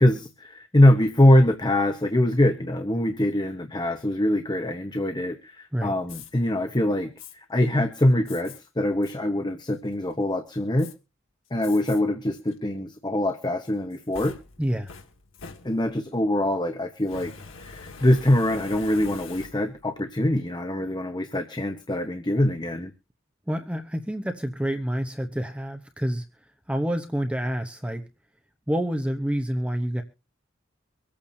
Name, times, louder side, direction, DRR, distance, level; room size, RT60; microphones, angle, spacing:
voice 1, 0.0-10.9 11.5-14.4 15.6-17.3 17.6-22.9, left 1 dB, 20° left, 6 dB, 1.0 m, -23 dB
Fire, 6.1-6.3 7.2-7.3 8.3-8.6 9.0-9.2 9.7-10.1 10.8-10.9 11.6-12.0 12.5-12.6 13.6-16.1 17.0-19.9, left 4 dB, 80° left, 1.8 m, -44 dB
voice 2, 14.6-14.9 23.5-26.2 26.7-28.0 28.7-30.0, equal, 5° right, 6 dB, 0.8 m, -28 dB
24.5 x 8.7 x 2.7 m, 0.31 s
head